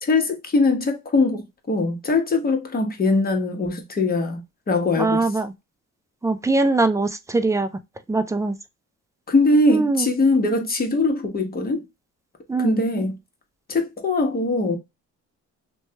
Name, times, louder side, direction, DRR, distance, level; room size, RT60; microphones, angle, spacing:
voice 1, 0.0-5.3 9.3-11.8 12.6-13.2 13.7-14.8, left 2 dB, 30° left, 0.9 m, -21 dB
voice 2, 5.0-5.5 6.2-7.7 8.1-8.6 9.7-10.1 12.5-12.8, right 3 dB, 10° right, 0.3 m, -21 dB
3.1 x 2.2 x 2.7 m
cardioid pair, 90°, 30 cm